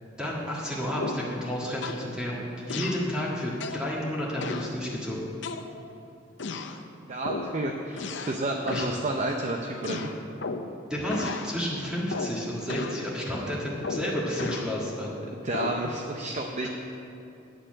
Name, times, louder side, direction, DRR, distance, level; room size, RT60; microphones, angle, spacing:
voice 1, 0.2-5.2 8.7-8.8 10.9-15.2, equal, 5° right, -6 dB, 1.6 m, -31 dB
sound 1, 1.0-1.3 1.8-2.1 2.7-3.1 3.6-3.9 4.4-4.7 5.4-6.0 6.4-6.8 7.2-7.6 8.0-8.4 8.7-9.0 9.8-10.8 11.1-11.5 12.1-12.4 12.7-13.0 13.8-14.7 15.5-15.8, left 3 dB, 65° left, 0.6 m, -34 dB
voice 2, 7.1-10.1 15.3-16.7, right 2 dB, 35° right, 2 dB, 0.6 m, -31 dB
9.0 x 7.3 x 8.8 m, 2.8 s
head